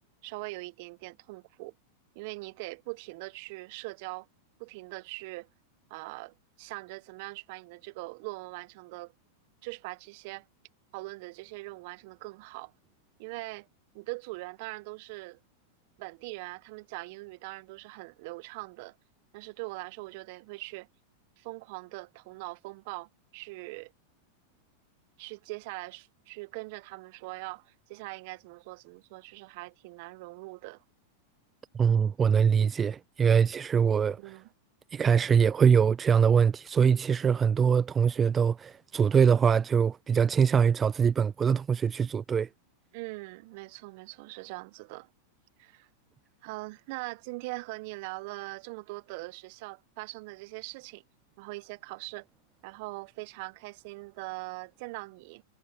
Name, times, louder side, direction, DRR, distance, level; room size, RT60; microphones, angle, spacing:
voice 1, 0.2-1.7 2.1-4.3 4.6-5.5 5.9-9.1 9.6-10.4 10.9-12.7 13.2-13.7 13.9-15.4 16.0-19.0 19.3-20.9 21.4-23.9 25.2-30.8 34.2-34.5 42.9-45.1 45.6-45.9 46.4-51.0 51.4-52.3 52.6-55.4, right 25 dB, 55° right, 1.4 m, -41 dB
voice 2, 31.7-34.2 34.9-42.5, right 7 dB, 25° right, 0.3 m, -23 dB
hypercardioid pair, 100°, 0 cm